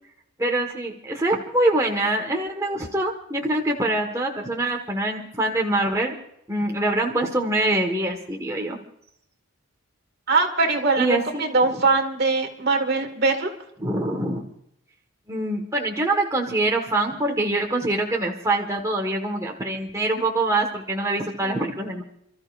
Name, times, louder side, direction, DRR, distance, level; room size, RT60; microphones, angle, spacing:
voice 1, 0.4-6.2 6.5-8.8 11.0-11.5 13.8-14.4 15.3-22.0, right 2 dB, 15° right, 0 dB, 1.6 m, -24 dB
voice 2, 10.3-11.1 11.4-13.5 21.4-21.5, right 3 dB, 50° right, 4 dB, 2.1 m, -21 dB
29.5 x 13.5 x 2.6 m, 0.75 s
head